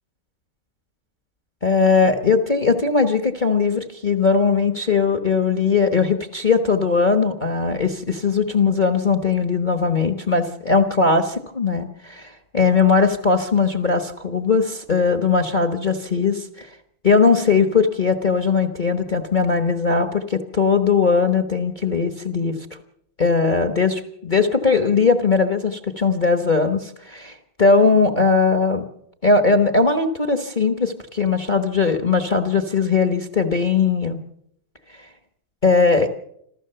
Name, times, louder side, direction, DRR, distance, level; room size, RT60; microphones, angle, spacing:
voice 1, 1.6-16.7 17.0-22.5 23.2-28.8 29.2-34.2 35.6-36.1, left 4 dB, 30° left, 6 dB, 1.2 m, -19 dB
26.5 x 15.5 x 6.9 m, 0.73 s
omnidirectional pair, 2.1 m